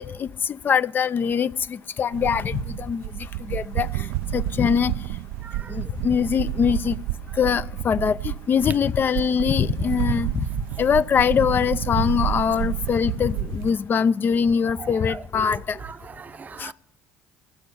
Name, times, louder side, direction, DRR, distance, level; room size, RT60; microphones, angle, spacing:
voice 1, 0.0-3.0 3.5-4.1 4.3-4.9 5.7-7.0 7.4-10.5 10.8-15.8 16.6-16.7, left 7 dB, 40° left, 0.5 m, -23 dB
sound 1, 2.1-13.7, right 15 dB, 75° right, 0.4 m, -30 dB
voice 2, 14.8-15.2 15.5-16.7, right 6 dB, 35° right, 0.7 m, -39 dB
15.0 x 6.7 x 9.6 m
hypercardioid pair, 65°, 5 cm